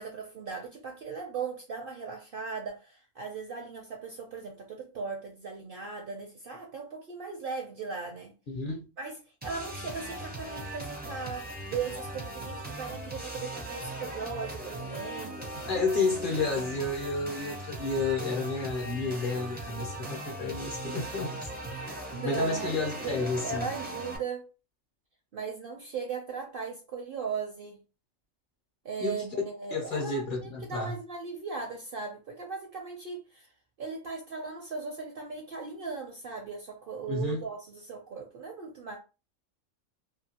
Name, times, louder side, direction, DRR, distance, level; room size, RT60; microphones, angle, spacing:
voice 1, 0.0-8.3 9.0-15.8 21.7-22.7 23.0-24.5 25.3-27.8 28.8-33.5 33.8-39.0, right 5 dB, 60° right, 0.6 m, -38 dB
voice 2, 8.5-8.8 15.7-21.5 22.2-23.7 29.0-29.3 29.7-30.9 37.1-37.5, left 3 dB, 50° left, 0.7 m, -31 dB
sound 1, 9.4-24.2, right 1 dB, 10° right, 0.4 m, -39 dB
2.7 x 2.6 x 2.8 m
omnidirectional pair, 1.4 m